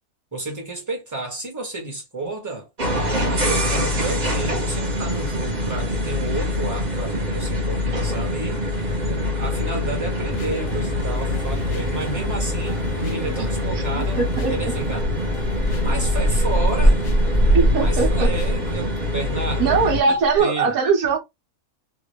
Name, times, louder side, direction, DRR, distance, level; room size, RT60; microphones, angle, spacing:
voice 1, 0.3-2.7 3.2-8.6 9.0-14.2 14.5-15.1 15.8-17.0 17.7-19.8 20.1-20.7, right 2 dB, 15° right, 1.2 m, -31 dB
sound 1, 2.8-20.0, left 1 dB, 35° right, 1.0 m, -25 dB
sound 2, 10.3-18.7, left 2 dB, 75° left, 1.0 m, -35 dB
voice 2, 14.2-14.7 17.5-18.3 19.6-21.2, right 5 dB, 75° right, 1.4 m, -20 dB
sound 3, 14.6-19.2 19.5-19.6 20.0-20.4, right 1 dB, 30° left, 0.4 m, -20 dB
3.2 x 2.4 x 3.1 m
omnidirectional pair, 1.5 m